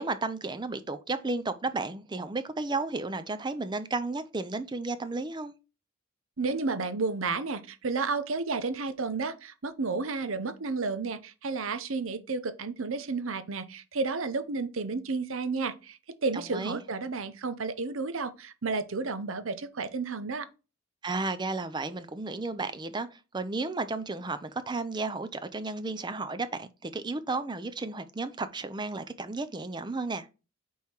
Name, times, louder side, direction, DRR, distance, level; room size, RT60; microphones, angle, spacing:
voice 1, 0.0-5.5 16.3-16.8 21.0-30.3, right 3 dB, 20° right, 0.5 m, -33 dB
voice 2, 6.4-20.5, right 4 dB, 70° right, 0.8 m, -32 dB
5.5 x 4.6 x 4.4 m
head